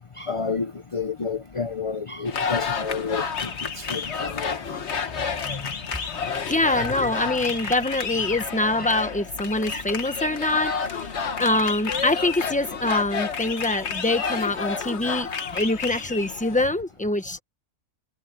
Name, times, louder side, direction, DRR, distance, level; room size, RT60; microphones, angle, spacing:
voice 1, 0.2-4.8 5.4-5.7 6.6-7.1 7.6-7.7 8.8-8.9 9.7-9.8 15.5-15.6, left 4 dB, 35° left, 0.5 m, -31 dB
sound 1, 2.3-16.7, left 5 dB, 50° left, 1.5 m, -30 dB
voice 2, 6.5-11.1 11.4-15.3 15.5-17.4, left 2 dB, 5° left, 1.0 m, -24 dB
omnidirectional pair, 1.6 m